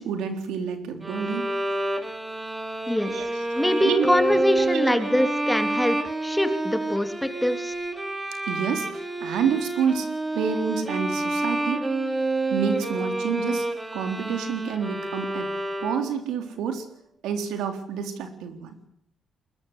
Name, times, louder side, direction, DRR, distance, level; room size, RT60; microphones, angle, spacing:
voice 1, 0.0-1.5 3.1-3.3 3.8-4.1 5.1-5.3 8.5-10.1 10.3-11.9 12.5-15.5 15.8-16.9 17.2-18.7, right 7 dB, 85° right, 6 dB, 3.8 m, -28 dB
Bowed string instrument, 1.0-16.3, right 2 dB, 15° right, 4.0 m, -28 dB
voice 2, 2.9-3.2 3.5-7.7, left 1 dB, 5° left, 7 dB, 3.0 m, -24 dB
22.0 x 21.0 x 8.3 m, 0.74 s
cardioid pair, 90°, 0 cm